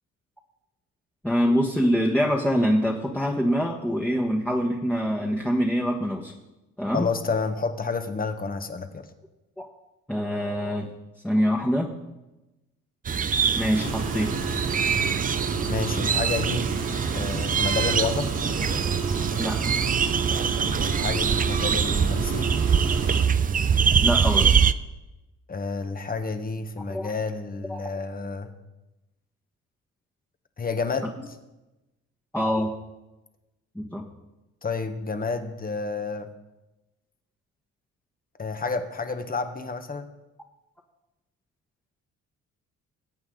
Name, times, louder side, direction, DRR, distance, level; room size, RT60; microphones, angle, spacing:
voice 1, 1.2-6.3 6.8-7.1 9.6-9.7 10.1-10.9 11.2-11.9 13.6-14.4 19.4-19.6 24.0-24.5 26.9-27.1 27.7-27.8 32.3-32.7 33.7-34.1, equal, 5° left, -1 dB, 1.5 m, -24 dB
voice 2, 6.9-9.1 15.7-16.7 17.1-18.3 20.8-22.6 25.5-28.5 30.6-31.2 34.6-36.3 38.4-40.1, left 4 dB, 30° left, 8 dB, 1.4 m, -30 dB
sound 1, 13.1-24.7, right 7 dB, 30° right, 0.5 m, -24 dB
sound 2, 13.7-23.2, right 4 dB, 55° right, 2.1 m, -31 dB
21.0 x 8.6 x 3.9 m, 1.0 s
cardioid pair, 90°, 30 cm